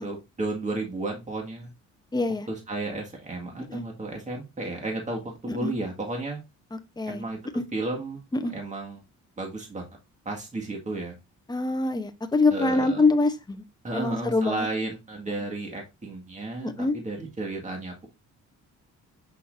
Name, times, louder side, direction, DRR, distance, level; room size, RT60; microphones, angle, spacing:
voice 1, 0.0-1.7 2.5-6.4 7.1-7.4 7.7-8.2 8.5-9.0 9.4-9.9 10.3-11.2 12.5-13.0 13.8-18.1, right 2 dB, 25° right, 2.0 m, -33 dB
voice 2, 2.1-2.5 3.7-3.9 5.5-5.7 6.7-7.2 7.5-7.6 8.3-8.5 11.5-13.6 13.9-14.7 16.6-17.0, left 3 dB, 15° left, 0.9 m, -25 dB
6.5 x 5.5 x 2.7 m
cardioid pair, 90°, 30 cm